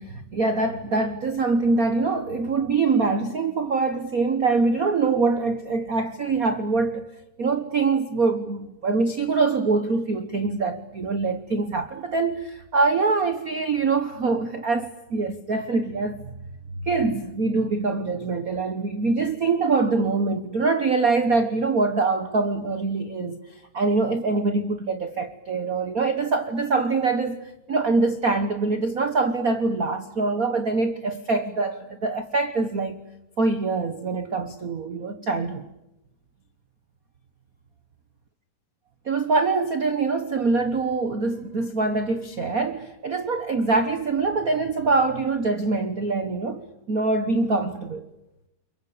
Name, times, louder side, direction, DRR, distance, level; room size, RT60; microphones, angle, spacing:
voice 1, 0.0-7.1 7.4-16.2 16.8-33.0 33.4-35.6 39.0-48.0, right 3 dB, 85° right, 0.7 m, -24 dB
29.5 x 23.5 x 8.6 m
omnidirectional pair, 3.5 m